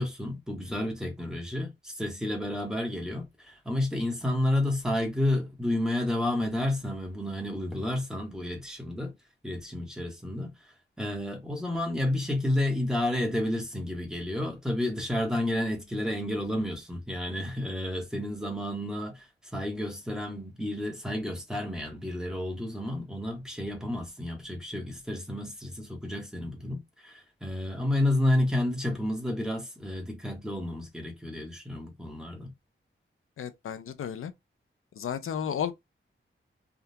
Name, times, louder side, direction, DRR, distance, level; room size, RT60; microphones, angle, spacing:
voice 1, 0.0-9.1 9.4-10.5 11.0-19.3 19.5-32.5, left 1 dB, 5° right, 1.1 m, -31 dB
voice 2, 33.4-34.3 35.0-35.7, left 8 dB, 85° left, 0.5 m, -33 dB
3.5 x 2.3 x 2.7 m
wide cardioid pair, 120°, 21 cm